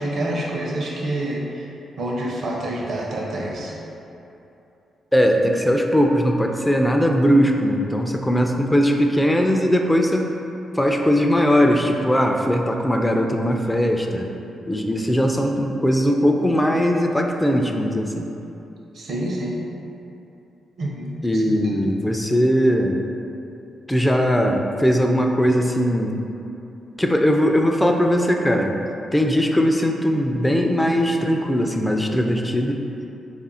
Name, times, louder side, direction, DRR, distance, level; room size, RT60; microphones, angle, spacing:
voice 1, 0.0-1.7 2.0-3.8 18.9-19.6 20.8-21.9, right 1 dB, 65° right, -2 dB, 0.7 m, -28 dB
voice 2, 5.1-10.3 10.8-14.3 14.7-18.3 21.2-23.0 23.9-26.2 27.0-28.7 29.1-32.8, equal, 10° left, 2 dB, 0.4 m, -19 dB
3.4 x 2.5 x 4.2 m, 2.8 s
supercardioid pair, 50°, 0 cm